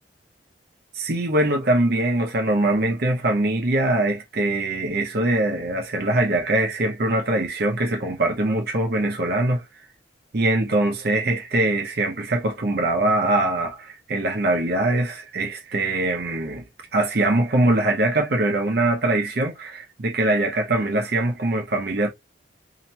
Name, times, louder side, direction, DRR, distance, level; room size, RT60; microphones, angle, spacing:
voice 1, 0.9-9.6 10.3-16.7 16.9-22.1, right 2 dB, 60° right, 0.8 m, -22 dB
2.9 x 2.2 x 2.7 m
head